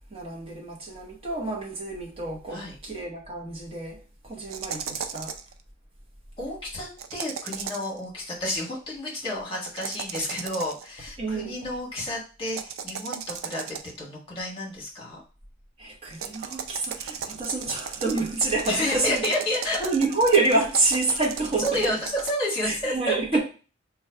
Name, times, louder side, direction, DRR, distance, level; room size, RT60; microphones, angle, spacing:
voice 1, 0.1-5.3 11.2-11.6 15.8-19.3 19.8-21.8 22.6-23.4, right 3 dB, 30° right, 1.0 m, -27 dB
sound 1, 4.5-5.5 7.0-8.0 9.6-10.9 12.5-14.0 16.1-22.3, right 7 dB, 80° right, 0.4 m, -36 dB
voice 2, 6.4-13.6 14.0-15.2 18.7-19.8 21.6-23.1, left 1 dB, 25° left, 1.4 m, -30 dB
3.1 x 2.4 x 4.4 m
head